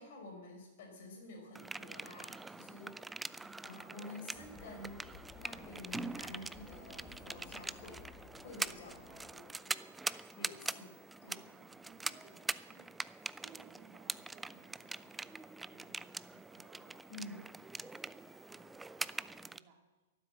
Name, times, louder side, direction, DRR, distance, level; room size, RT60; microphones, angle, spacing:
voice 1, 0.0-3.2 3.6-5.1 5.4-8.0 8.4-9.0 9.3-9.8 10.3-10.9 11.2-11.4 17.1-17.5, left 2 dB, 50° left, 2 dB, 5.3 m, -50 dB
sound 1, 1.6-19.6, right 3 dB, 5° right, 0.4 m, -44 dB
sound 2, 4.3-9.3, left 4 dB, 15° left, 2.4 m, -55 dB
voice 2, 9.1-10.8 11.3-12.9 13.4-17.0 17.7-19.8, right 6 dB, 40° right, 2 dB, 3.1 m, -63 dB
13.0 x 12.0 x 7.7 m, 1.3 s
figure-of-eight pair, 105°, 0 cm